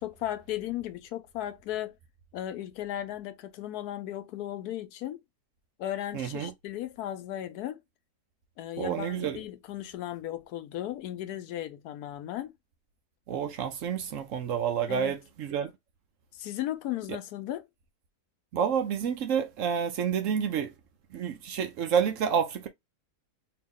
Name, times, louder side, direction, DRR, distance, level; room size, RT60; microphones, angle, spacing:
voice 1, 0.0-2.0 2.3-5.2 5.8-7.8 8.6-12.5 14.9-15.1 16.3-17.7, left 12 dB, 80° left, 1.1 m, -36 dB
voice 2, 6.1-6.5 8.8-9.4 13.3-15.7 18.5-20.7 21.1-22.7, right 7 dB, 65° right, 0.9 m, -29 dB
2.9 x 2.8 x 3.6 m
omnidirectional pair, 1.6 m